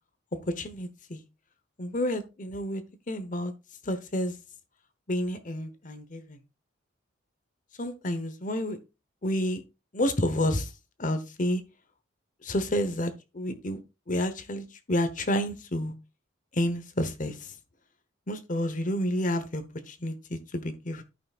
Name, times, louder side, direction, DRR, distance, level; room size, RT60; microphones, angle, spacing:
voice 1, 0.6-1.2 1.8-3.5 3.9-4.4 5.1-6.4 7.8-8.8 9.2-9.6 9.9-10.7 11.0-11.6 12.4-13.8 14.1-15.9 16.5-17.5 18.3-21.0, left 1 dB, 40° left, 1.0 m, -30 dB
13.0 x 5.8 x 2.4 m
head